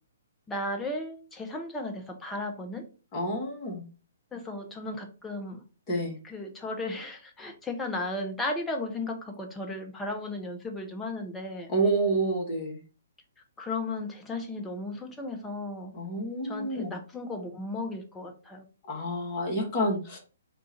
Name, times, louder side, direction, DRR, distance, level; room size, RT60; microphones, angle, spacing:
voice 1, 0.5-2.8 4.3-5.6 6.0-11.7 13.6-15.9 16.4-18.6, left 2 dB, 10° left, 3 dB, 0.7 m, -35 dB
voice 2, 3.1-3.8 5.9-6.2 11.7-12.8 15.9-16.9 18.9-20.2, right 1 dB, 25° left, -1 dB, 1.3 m, -28 dB
3.7 x 2.5 x 4.2 m, 0.35 s
figure-of-eight pair, 125°, 0 cm